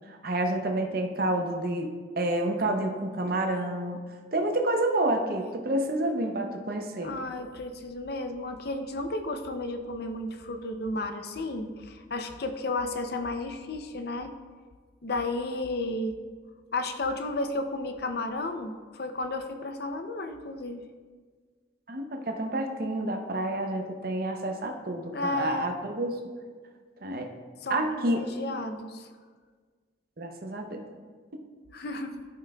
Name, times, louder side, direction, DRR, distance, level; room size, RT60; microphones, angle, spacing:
voice 1, 0.1-4.0 4.3-7.2 21.9-26.2 27.0-27.3 27.7-28.3 30.2-30.8, right 1 dB, 50° right, 3 dB, 0.7 m, -29 dB
voice 2, 7.0-14.3 15.0-16.2 16.7-20.8 25.1-25.8 27.6-29.1 31.7-32.2, left 2 dB, 55° left, 7 dB, 0.5 m, -33 dB
13.0 x 5.6 x 2.3 m, 1.5 s
head